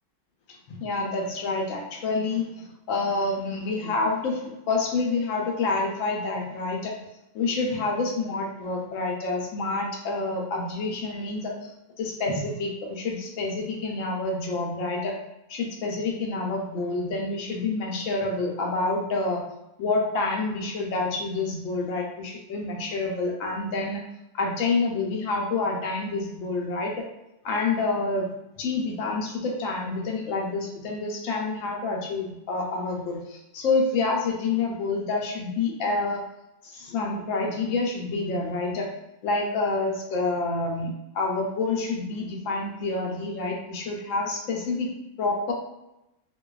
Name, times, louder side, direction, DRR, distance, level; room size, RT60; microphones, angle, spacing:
voice 1, 0.8-6.9 7.3-11.7 12.0-15.1 15.5-19.4 19.8-24.0 24.3-26.9 27.4-28.3 28.6-36.2 36.6-38.9 39.2-44.9 45.2-45.5, left 3 dB, 70° left, 0 dB, 0.8 m, -28 dB
2.5 x 2.2 x 2.3 m, 0.90 s
omnidirectional pair, 1.6 m